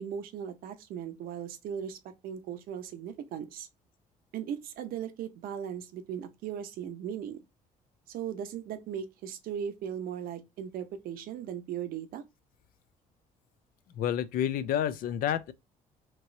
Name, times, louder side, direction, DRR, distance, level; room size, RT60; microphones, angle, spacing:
voice 1, 0.0-3.7 4.3-7.4 8.1-12.2, right 8 dB, 75° right, 0.6 m, -38 dB
voice 2, 13.9-15.5, left 10 dB, 70° left, 0.4 m, -29 dB
3.0 x 2.9 x 2.5 m
cardioid pair, 90°, 15 cm